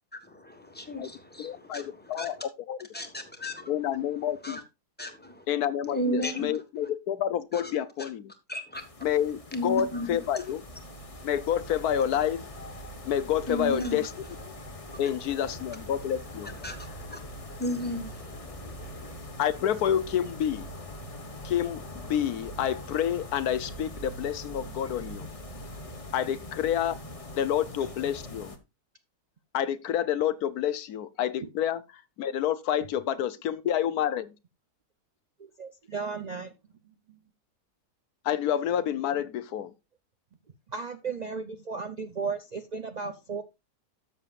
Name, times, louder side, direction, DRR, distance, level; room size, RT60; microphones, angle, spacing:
voice 1, 0.2-2.4 2.9-3.7 4.4-4.6 5.0-5.4 5.9-6.6 7.5-7.7 8.0-8.1 8.5-8.8 9.5-10.4 13.5-14.0 14.9-15.1 16.5-17.2 17.6-19.1, left 1 dB, 5° left, 1.4 m, -35 dB
voice 2, 1.4-2.4 2.7-2.8 3.7-4.6 5.5-8.3 9.0-10.6 11.2-12.4 13.1-14.1 15.0-16.6 19.4-20.7 21.4-25.3 26.1-26.9 27.4-28.5 29.5-31.8 32.2-34.3 38.2-39.7, left 10 dB, 75° left, 1.1 m, -28 dB
sound 1, 8.7-28.6, left 1 dB, 25° left, 1.0 m, -42 dB
voice 3, 35.4-36.6 36.8-37.2 40.7-43.4, right 5 dB, 70° right, 0.4 m, -35 dB
13.0 x 7.0 x 2.4 m
omnidirectional pair, 1.7 m